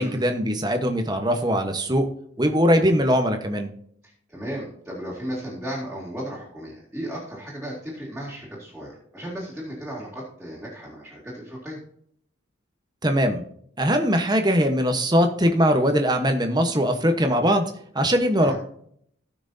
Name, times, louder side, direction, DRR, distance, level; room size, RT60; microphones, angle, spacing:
voice 1, 0.0-2.1 2.4-3.7 13.0-13.4 13.8-18.6, equal, 20° right, 6 dB, 1.0 m, -21 dB
voice 2, 4.0-11.8 18.4-18.6, equal, 5° right, -7 dB, 2.4 m, -35 dB
17.5 x 6.0 x 2.7 m, 0.67 s
head